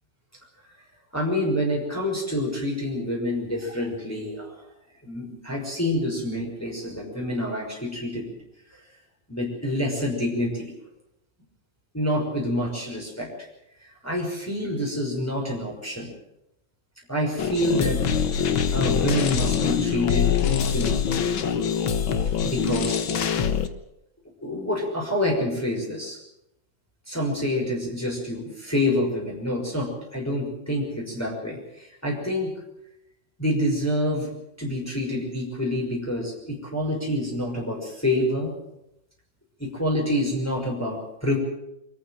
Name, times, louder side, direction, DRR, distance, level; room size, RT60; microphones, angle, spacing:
voice 1, 1.1-4.5 5.0-8.3 9.3-10.7 11.9-13.3 13.8-16.1 17.1-18.0 18.7-21.0 22.4-23.0 24.4-26.2 27.1-32.5 33.4-34.3 34.6-38.5 39.6-41.4, left 1 dB, 5° left, -2 dB, 5.9 m, -27 dB
sound 1, 17.4-23.7, left 7 dB, 90° left, 2.1 m, -24 dB
25.0 x 14.5 x 9.1 m, 0.86 s
omnidirectional pair, 2.1 m